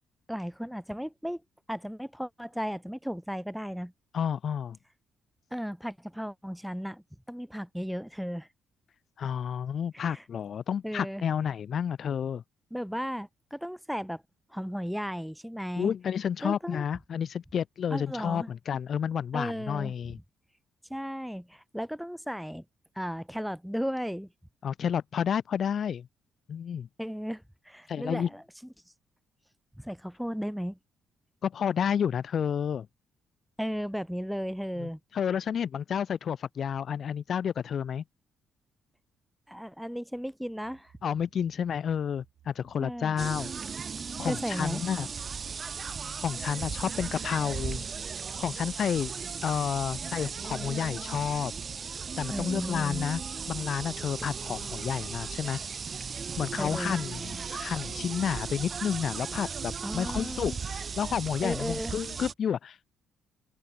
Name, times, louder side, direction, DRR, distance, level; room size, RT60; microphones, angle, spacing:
voice 1, 0.3-1.4 1.7-3.9 5.5-8.5 9.9-10.2 10.8-11.2 12.7-14.2 14.5-15.9 16.4-16.8 17.9-18.5 19.3-19.9 20.9-22.6 23.0-24.3 27.0-28.4 29.8-30.8 33.6-35.0 39.5-40.9 42.8-43.1 44.2-44.8 52.3-53.1 56.6-56.9 59.8-60.5 61.4-61.9, equal, ahead, 1.9 m, -35 dB
voice 2, 4.1-4.8 9.2-12.4 15.8-20.2 24.6-26.1 26.5-26.9 27.9-28.3 31.4-32.9 34.8-38.0 41.0-43.5 44.2-45.1 46.2-47.9 48.4-49.1 49.4-51.5 52.2-53.2 53.5-55.6 56.4-62.9, left 8 dB, 55° left, 0.6 m, -30 dB
sound 1, 40.6-54.6, right 11 dB, 75° right, 4.5 m, -61 dB
sound 2, 43.2-62.3, right 6 dB, 40° right, 1.5 m, -36 dB
open air
cardioid pair, 90°, 0 cm